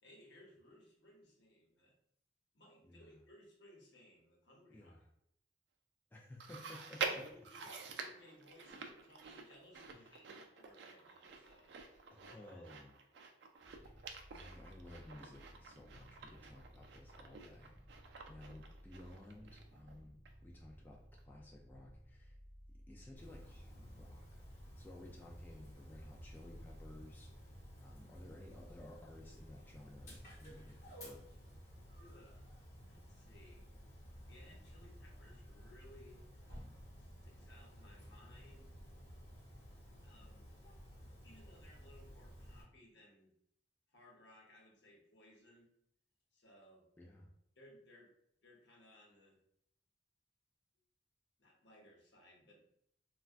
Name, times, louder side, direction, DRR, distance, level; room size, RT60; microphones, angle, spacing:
voice 1, 0.0-1.9 2.5-5.0 7.0-11.7 12.2-12.6 32.0-32.4 32.9-33.7 34.3-36.2 37.0-38.9 40.0-40.5 41.2-43.3 43.9-45.7 46.3-46.8 47.6-48.1 48.4-49.4 51.4-52.6, left 1 dB, 75° left, -1 dB, 0.8 m, -62 dB
voice 2, 2.8-3.2 4.7-5.1 6.1-7.3 9.9-10.2 12.1-12.9 13.9-22.4 22.9-24.4 24.8-31.2 47.0-47.3, left 1 dB, 10° left, -2 dB, 0.3 m, -56 dB
Chewing mastication, 6.4-19.9 20.3-20.4 21.2-21.3, right 5 dB, 70° right, 0.4 m, -48 dB
sound 1, 13.6-32.6, equal, 30° right, 0.8 m, -61 dB
Dog, 23.2-42.6, equal, 40° left, 1.0 m, -54 dB
3.4 x 2.2 x 2.4 m, 0.73 s
head